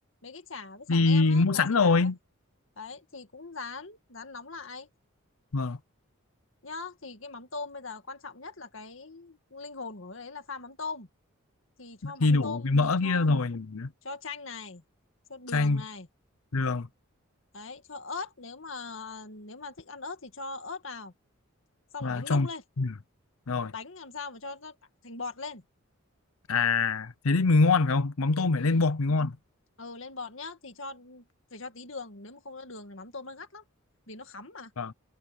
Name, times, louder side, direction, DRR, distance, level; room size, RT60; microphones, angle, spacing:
voice 1, 0.2-2.1 2.8-4.9 6.6-11.1 11.8-13.3 14.0-14.8 15.3-16.1 17.5-21.1 21.9-22.6 23.7-24.8 25.0-25.6 28.6-28.9 29.8-31.3 31.5-33.6 34.1-34.7, left 4 dB, 65° left, 2.1 m, -41 dB
voice 2, 0.9-2.2 5.5-5.8 12.0-13.9 15.5-15.8 16.5-16.9 22.0-22.5 22.8-22.9 23.5-23.7 26.5-29.4 34.8-34.9, left 3 dB, 85° left, 0.7 m, -24 dB
head